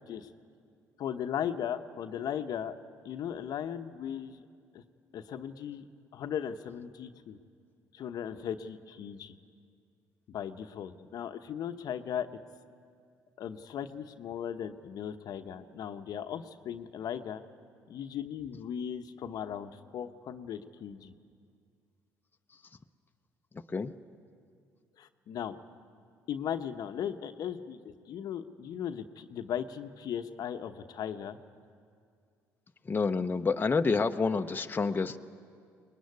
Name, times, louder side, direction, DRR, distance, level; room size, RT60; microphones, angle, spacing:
voice 1, 1.0-2.7 3.0-4.4 4.7-4.8 5.1-5.9 6.1-7.4 7.9-9.3 10.3-12.3 13.4-17.4 17.9-21.1 25.0-25.6 26.3-31.4, left 9 dB, 60° left, 8 dB, 1.0 m, -37 dB
voice 2, 32.9-35.2, left 4 dB, 25° left, 6 dB, 0.9 m, -28 dB
23.0 x 20.5 x 9.6 m, 2.2 s
supercardioid pair, 65°, 7 cm